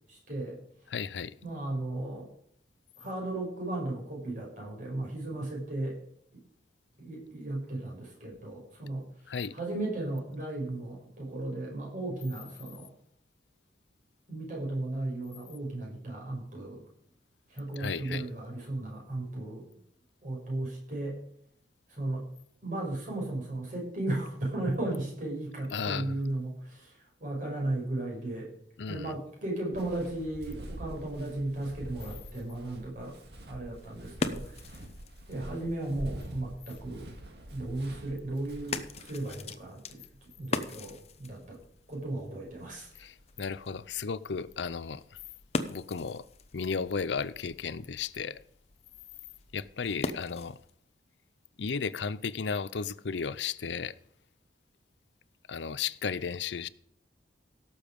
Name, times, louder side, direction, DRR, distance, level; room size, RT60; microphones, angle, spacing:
voice 1, 0.1-0.6 1.4-2.3 3.0-6.0 6.3-6.4 7.0-9.1 9.5-12.9 14.3-16.8 17.5-19.7 20.2-21.2 21.9-22.2 22.6-28.5 28.9-33.2 33.5-34.6 35.3-37.1 37.5-40.0 40.4-41.6 41.9-42.9, right 2 dB, 45° right, -2 dB, 6.8 m, -35 dB
voice 2, 0.9-1.3 9.3-9.5 17.8-18.3 25.7-26.2 28.8-29.1 43.0-45.0 45.7-46.2 46.5-48.4 49.5-50.6 51.6-54.0 55.5-56.7, left 5 dB, 75° left, 17 dB, 0.6 m, -34 dB
Walk footsteps, 29.7-39.4, right 1 dB, 60° right, 2.2 m, -46 dB
sound 1, 33.6-50.8, left 3 dB, 35° left, 0.9 m, -42 dB
17.0 x 7.2 x 5.3 m, 0.70 s
head